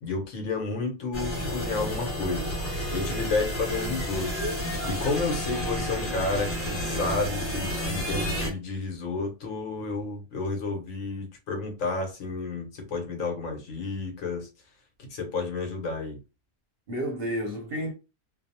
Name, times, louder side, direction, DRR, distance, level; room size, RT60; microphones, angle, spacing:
voice 1, 0.0-2.6 2.9-4.3 4.6-14.5 15.1-16.2, left 3 dB, 65° left, 1.1 m, -31 dB
sound 1, 1.1-8.5, equal, 25° left, 1.2 m, -31 dB
voice 2, 16.9-17.9, equal, 55° right, 0.8 m, -32 dB
2.7 x 2.0 x 2.7 m
omnidirectional pair, 1.5 m